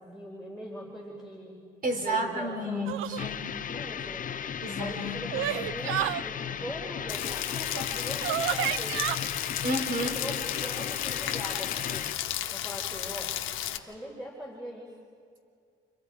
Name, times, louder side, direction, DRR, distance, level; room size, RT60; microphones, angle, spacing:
voice 1, 0.0-1.6 1.9-3.0 3.7-9.0 10.0-13.4 13.8-15.0, equal, ahead, -3 dB, 4.0 m, -41 dB
voice 2, 1.8-3.4 4.6-5.0 5.2-5.3 9.6-10.1, right 1 dB, 45° right, 3 dB, 3.8 m, -31 dB
sound 1, 2.9-3.3 4.7-6.2 7.7-7.8 8.2-9.2, right 12 dB, 85° right, 0.5 m, -30 dB
sound 2, 3.2-12.1, left 8 dB, 40° left, 0.7 m, -36 dB
Rain, 7.1-13.8, left 12 dB, 90° left, 1.1 m, -34 dB
30.0 x 24.0 x 4.8 m, 2.3 s
cardioid pair, 90°, 20 cm